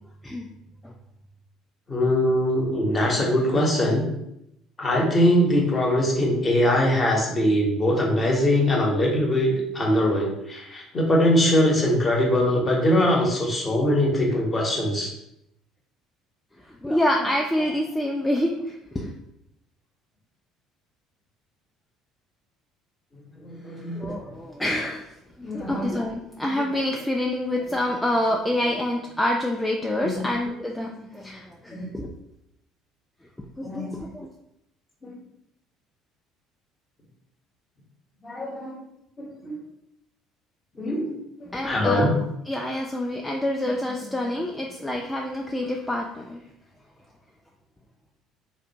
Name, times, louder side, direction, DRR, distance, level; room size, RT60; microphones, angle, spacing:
voice 1, 1.9-4.0 4.8-15.1 23.4-24.0 25.4-25.9 30.0-30.3 31.7-31.9 33.6-34.0 35.0-35.1 38.2-38.7 39.2-39.6 40.8-41.1 41.4-42.1, left 1 dB, 30° left, -1 dB, 0.8 m, -22 dB
voice 2, 16.6-19.1 23.7-25.1 25.4-32.1 33.6-34.3 41.5-42.1 42.4-46.4, left 1 dB, 10° left, 0 dB, 0.3 m, -27 dB
2.5 x 2.1 x 2.7 m, 0.81 s
figure-of-eight pair, 55°, 0 cm